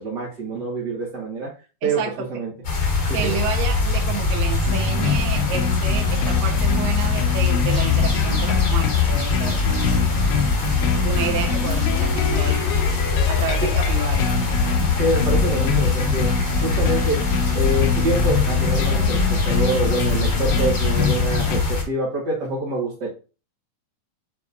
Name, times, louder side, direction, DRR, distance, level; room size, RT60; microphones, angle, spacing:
voice 1, 0.0-1.5 1.8-2.0 2.3-2.5 3.0-3.3 13.6-13.7 15.0-16.3 16.6-17.2 17.5-23.1, right 2 dB, 45° right, -4 dB, 1.5 m, -26 dB
voice 2, 1.8-2.3 3.1-10.0 11.0-12.6 13.3-14.3, right 6 dB, 70° right, 2 dB, 2.9 m, -30 dB
sound 1, 2.6-21.8, left 4 dB, 25° left, 3.4 m, -21 dB
sound 2, 4.7-21.6, left 5 dB, 85° left, 2.7 m, -27 dB
9.0 x 4.2 x 2.7 m, 0.32 s
omnidirectional pair, 4.2 m